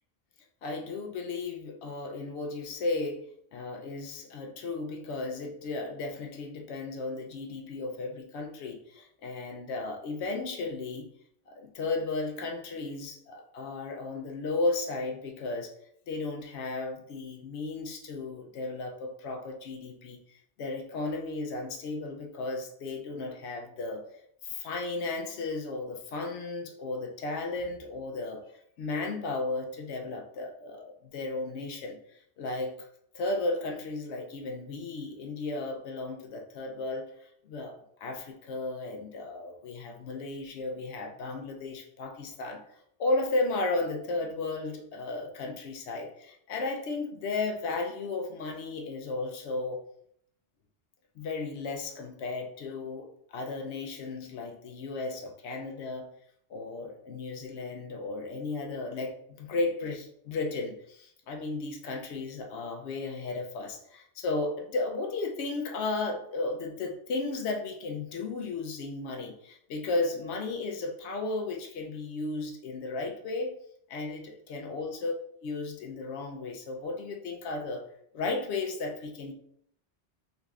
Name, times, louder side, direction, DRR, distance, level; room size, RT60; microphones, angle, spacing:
voice 1, 0.6-3.2 3.5-11.1 11.5-15.7 16.1-20.2 20.6-24.0 24.4-28.4 28.8-32.0 32.4-32.9 33.1-37.1 37.4-37.7 38.0-42.6 43.0-49.8 51.2-56.1 56.5-73.5 73.9-75.1 75.4-77.8 78.1-79.3, left 3 dB, 90° left, 2 dB, 0.9 m, -34 dB
3.8 x 3.0 x 2.4 m, 0.68 s
omnidirectional pair, 1.1 m